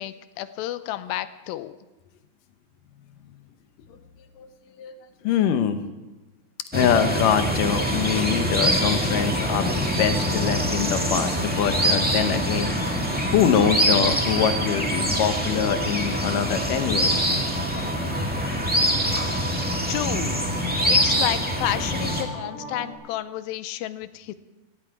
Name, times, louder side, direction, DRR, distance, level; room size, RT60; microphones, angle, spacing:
voice 1, 0.0-1.8 19.9-20.4 20.8-24.3, left 13 dB, 90° left, 13 dB, 2.5 m, -31 dB
voice 2, 5.2-5.8 6.7-9.7 10.0-12.7 13.3-17.2, left 8 dB, 75° left, 9 dB, 2.4 m, -24 dB
sound 1, 6.7-22.2, equal, 15° right, 0.3 m, -24 dB
sound 2, 6.9-22.9, right 2 dB, 70° right, 4.1 m, -37 dB
sound 3, 10.7-11.2 11.7-12.3 12.8-13.5 14.0-14.4 14.9-15.5 17.0-17.5 18.0-18.6 19.1-19.6 20.1-20.6 21.1-21.6, right 1 dB, 90° right, 5.1 m, -41 dB
17.5 x 15.5 x 4.7 m, 1.1 s
omnidirectional pair, 4.0 m